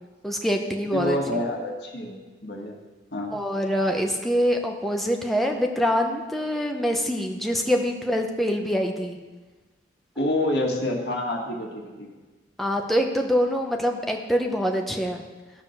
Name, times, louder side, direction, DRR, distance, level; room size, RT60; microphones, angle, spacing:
voice 1, 0.2-1.2 3.3-9.2 12.6-15.2, equal, ahead, 2 dB, 0.9 m, -25 dB
voice 2, 0.9-2.7 3.1-3.3 10.2-12.1, left 1 dB, 70° left, 0 dB, 1.9 m, -27 dB
14.0 x 5.2 x 6.5 m, 1.3 s
head